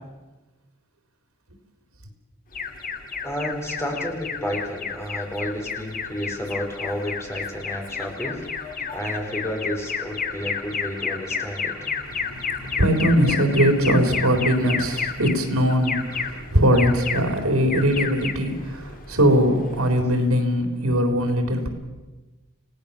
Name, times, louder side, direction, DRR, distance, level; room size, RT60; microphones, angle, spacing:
Alarm, 2.5-20.2, left 5 dB, 45° left, 1.8 m, -32 dB
voice 1, 3.2-11.9, equal, 15° left, 1 dB, 4.6 m, -31 dB
voice 2, 12.1-21.7, equal, 85° right, 5 dB, 3.9 m, -21 dB
29.5 x 18.0 x 7.1 m, 1.2 s
head